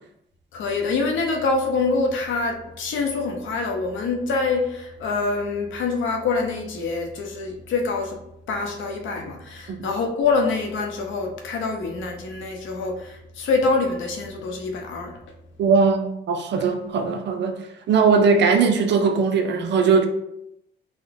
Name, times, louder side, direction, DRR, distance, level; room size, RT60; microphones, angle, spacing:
voice 1, 0.5-8.2 8.5-15.2, left 4 dB, 75° left, 3 dB, 0.7 m, -25 dB
voice 2, 15.6-17.6 17.9-20.1, right 5 dB, 60° right, 6 dB, 0.6 m, -19 dB
3.9 x 2.1 x 3.4 m, 0.80 s
cardioid pair, 90°, 20 cm